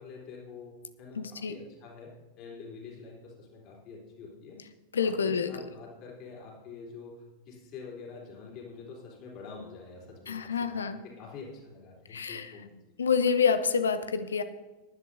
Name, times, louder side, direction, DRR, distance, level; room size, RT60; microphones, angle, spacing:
voice 1, 0.0-4.6 5.0-12.7, left 4 dB, 40° left, -2 dB, 3.7 m, -46 dB
voice 2, 1.2-1.5 4.9-5.5 10.3-11.0 12.1-12.5 13.0-14.4, left 6 dB, 70° left, 11 dB, 0.7 m, -27 dB
19.0 x 11.0 x 2.7 m, 1.2 s
figure-of-eight pair, 90°, 0 cm